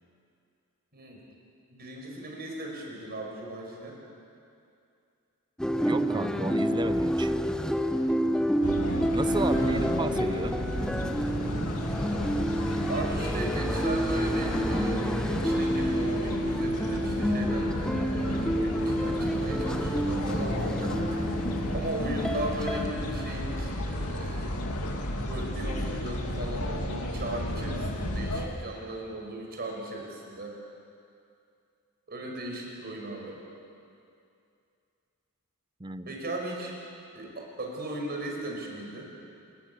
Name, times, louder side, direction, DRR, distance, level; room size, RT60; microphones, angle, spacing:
voice 1, 1.7-4.0 9.5-9.9 12.9-21.4 21.7-24.7 25.3-30.5 32.1-33.4 36.1-36.7 37.1-39.1, right 1 dB, 45° right, 0 dB, 5.7 m, -37 dB
sound 1, 5.6-22.8, equal, 5° left, 1.0 m, -29 dB
voice 2, 5.8-7.3 9.1-10.6 35.8-36.1, right 2 dB, 20° right, 11 dB, 0.7 m, -32 dB
sound 2, 8.6-28.5, left 1 dB, 80° left, 2.5 m, -33 dB
29.0 x 19.5 x 7.1 m, 2.5 s
head